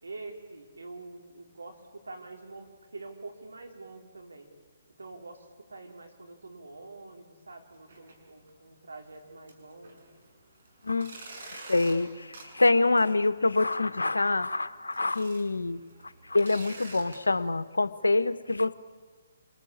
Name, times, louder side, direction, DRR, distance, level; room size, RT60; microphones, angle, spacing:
voice 1, 0.0-4.5 5.0-10.1, right 3 dB, 80° right, 2 dB, 4.6 m, -46 dB
sound 1, 7.7-8.1 8.5-8.6 9.1-9.2 9.5-17.2, right 3 dB, 60° right, 7.7 m, -49 dB
voice 2, 10.8-11.1 11.5-12.3 12.5-15.8 16.3-18.7, left 2 dB, 85° left, 13 dB, 1.1 m, -26 dB
27.5 x 22.0 x 8.8 m, 1.5 s
figure-of-eight pair, 140°, 0 cm